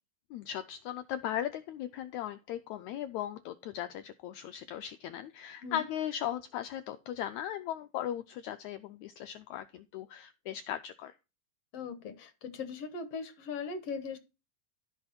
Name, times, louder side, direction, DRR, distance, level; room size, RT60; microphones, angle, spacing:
voice 1, 0.3-11.1, left 11 dB, 85° left, 10 dB, 1.6 m, -38 dB
voice 2, 11.7-14.2, left 5 dB, 65° left, 9 dB, 1.6 m, -39 dB
14.0 x 5.6 x 4.2 m, 0.28 s
omnidirectional pair, 4.0 m